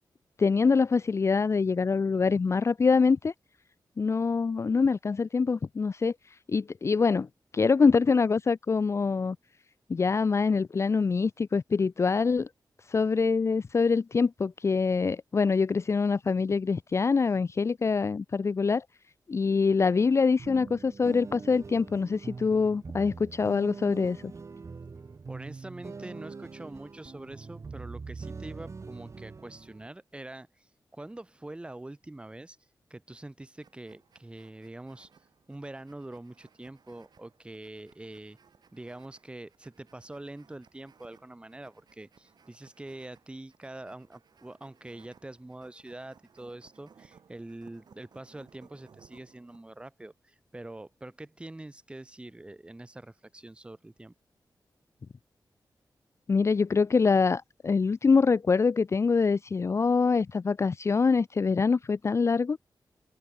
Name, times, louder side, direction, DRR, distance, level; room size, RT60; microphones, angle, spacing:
voice 1, 0.4-3.3 4.0-6.1 6.5-7.3 7.5-9.4 9.9-12.5 12.9-18.8 19.3-24.3 56.3-62.6, left 5 dB, 35° left, 0.7 m, -25 dB
sound 1, 20.4-29.9, right 4 dB, 40° right, 5.1 m, -43 dB
voice 2, 25.3-32.6 32.9-35.1 35.5-38.4 38.7-54.1, right 1 dB, 15° right, 4.0 m, -44 dB
sound 2, 33.6-49.6, right 6 dB, 65° right, 8.0 m, -61 dB
wide cardioid pair, 165°, 8 cm